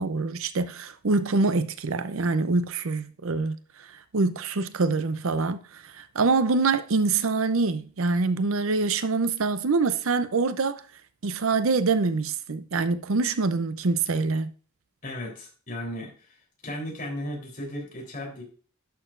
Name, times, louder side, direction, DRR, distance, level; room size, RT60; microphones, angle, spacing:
voice 1, 0.0-3.5 4.1-10.8 11.2-14.5, right 3 dB, 70° right, 0.6 m, -25 dB
voice 2, 15.0-16.1 16.6-18.4, left 1 dB, 40° left, 3.5 m, -35 dB
11.5 x 6.6 x 2.5 m
head